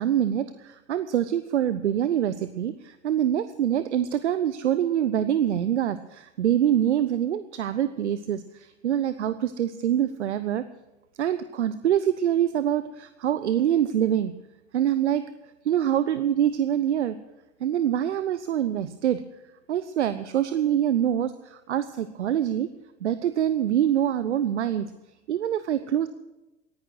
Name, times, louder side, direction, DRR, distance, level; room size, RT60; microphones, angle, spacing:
voice 1, 0.0-10.6 11.2-14.4 14.7-15.3 15.6-17.2 17.6-19.2 19.7-22.7 23.0-24.9 25.3-26.1, right 10 dB, 80° right, 13 dB, 0.7 m, -25 dB
18.5 x 10.5 x 6.3 m, 1.0 s
figure-of-eight pair, 85°, 35 cm